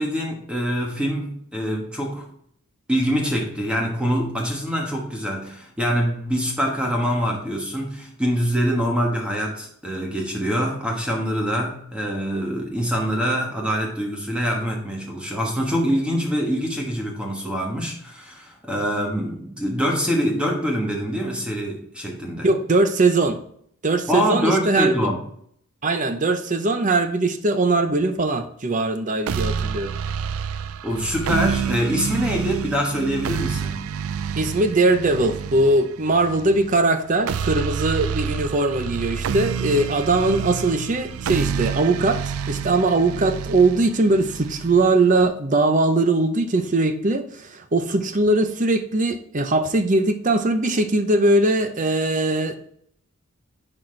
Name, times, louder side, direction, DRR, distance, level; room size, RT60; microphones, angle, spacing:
voice 1, 0.0-2.3 2.9-22.5 24.1-25.2 30.8-33.9, equal, 5° right, 0 dB, 1.2 m, -24 dB
voice 2, 22.4-23.4 23.8-25.1 25.8-29.9 34.4-52.7, right 2 dB, 35° right, 8 dB, 0.6 m, -20 dB
sound 1, 29.3-45.3, right 7 dB, 70° right, 0.3 m, -28 dB
10.5 x 4.3 x 3.2 m, 0.67 s
head